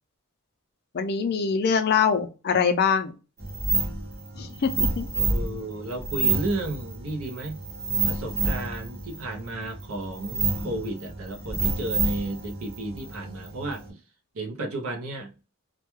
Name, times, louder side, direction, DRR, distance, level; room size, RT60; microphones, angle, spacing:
voice 1, 0.9-3.1 4.4-5.1, left 6 dB, 50° left, 8 dB, 0.4 m, -24 dB
sound 1, 3.4-13.9, right 3 dB, 45° right, 0.9 m, -29 dB
voice 2, 5.1-7.6 8.1-14.0 14.3-15.3, right 2 dB, 80° right, 4 dB, 0.6 m, -33 dB
2.2 x 2.2 x 2.9 m, 0.32 s
head